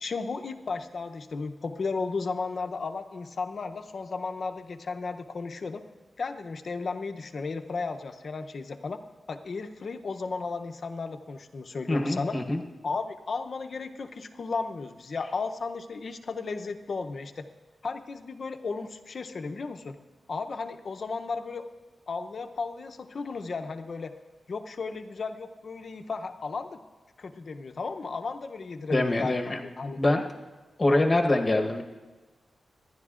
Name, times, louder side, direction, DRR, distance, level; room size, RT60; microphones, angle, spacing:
voice 1, 0.0-5.8 6.2-9.0 9.3-12.4 12.8-17.4 17.8-19.9 20.3-21.7 22.1-24.1 24.5-26.8 27.2-30.0, left 4 dB, 45° left, 7 dB, 0.6 m, -34 dB
voice 2, 11.9-12.6 28.9-29.6 30.0-30.2 30.8-31.8, left 2 dB, 20° left, 2 dB, 1.0 m, -24 dB
25.5 x 11.0 x 2.5 m, 1.2 s
wide cardioid pair, 170°, 0 cm